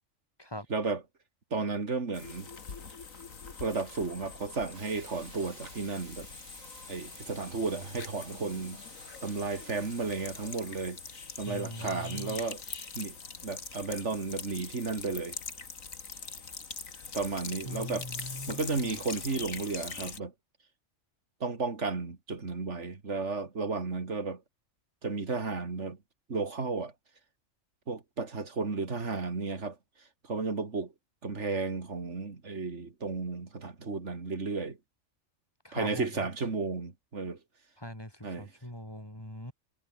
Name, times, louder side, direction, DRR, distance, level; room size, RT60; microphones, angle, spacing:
voice 1, 0.7-1.0 1.5-2.5 3.6-6.3 6.9-8.8 9.2-11.0 11.4-12.6 12.9-13.2 13.4-15.4 17.1-18.1 18.5-20.3 21.4-24.4 25.0-26.0 26.3-26.9 27.9-29.8 30.2-30.9 31.2-34.8 35.7-37.4 38.2-38.5, right 4 dB, 60° right, 2.9 m, -33 dB
sound 1, 2.1-20.2, left 5 dB, 80° left, 2.6 m, -43 dB
Hiss, 4.7-10.6, right 2 dB, 80° right, 7.2 m, -53 dB
voice 2, 11.5-12.4 17.6-19.0 35.6-36.2 37.8-39.5, left 1 dB, 15° left, 4.9 m, -41 dB
omnidirectional pair, 1.4 m